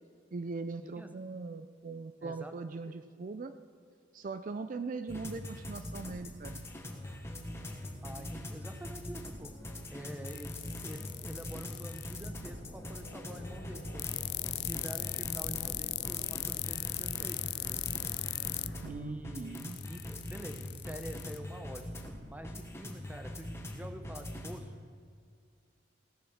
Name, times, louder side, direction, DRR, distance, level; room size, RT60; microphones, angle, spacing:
voice 1, 0.3-3.5 4.1-6.6 18.8-19.8, right 3 dB, 45° right, 10 dB, 0.4 m, -40 dB
voice 2, 0.8-1.2 2.2-2.5 2.9-3.0 8.0-9.5 9.9-14.2 14.7-17.8 18.8-21.9 22.3-24.7, equal, 10° right, 7 dB, 0.8 m, -47 dB
sound 1, 5.1-24.6, left 1 dB, 15° left, 1.3 m, -43 dB
sound 2, 10.3-12.3 14.0-18.7 19.6-21.4, left 19 dB, 60° left, 0.3 m, -37 dB
sound 3, 12.2-18.9, left 1 dB, 80° left, 1.0 m, -49 dB
16.5 x 7.4 x 6.4 m, 2.2 s
head